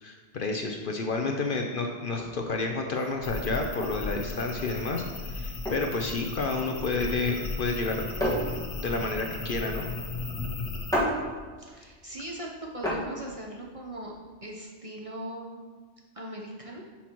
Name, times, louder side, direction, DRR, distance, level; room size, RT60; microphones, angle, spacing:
voice 1, 0.0-8.0 8.8-9.9, left 3 dB, 55° left, 3 dB, 0.7 m, -30 dB
sound 1, 2.2-14.3, equal, 5° left, 1.5 m, -34 dB
sound 2, 3.2-11.0, left 3 dB, 70° left, 1.4 m, -36 dB
voice 2, 11.6-14.1 14.4-15.6 16.1-16.8, right 1 dB, 30° right, -2 dB, 0.9 m, -39 dB
10.5 x 5.7 x 3.0 m, 1.5 s
omnidirectional pair, 1.2 m